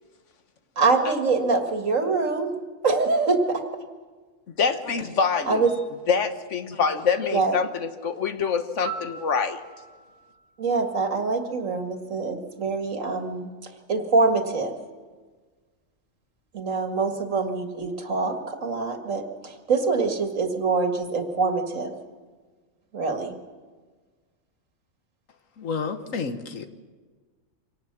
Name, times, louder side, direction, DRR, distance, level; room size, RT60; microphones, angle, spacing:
voice 1, 0.8-2.5 2.8-3.6 5.5-5.7 7.3-7.5 10.6-14.7 16.5-21.9 22.9-23.4, right 4 dB, 80° right, 5 dB, 2.2 m, -24 dB
voice 2, 4.6-5.7 6.1-9.6, left 5 dB, 70° left, 9 dB, 1.5 m, -25 dB
Piano, 8.8-11.8 19.9-20.1, right 6 dB, 45° left, 6.8 m, -42 dB
voice 3, 25.6-26.7, left 5 dB, 90° left, 8 dB, 1.7 m, -30 dB
25.0 x 18.5 x 6.0 m, 1.4 s
omnidirectional pair, 1.3 m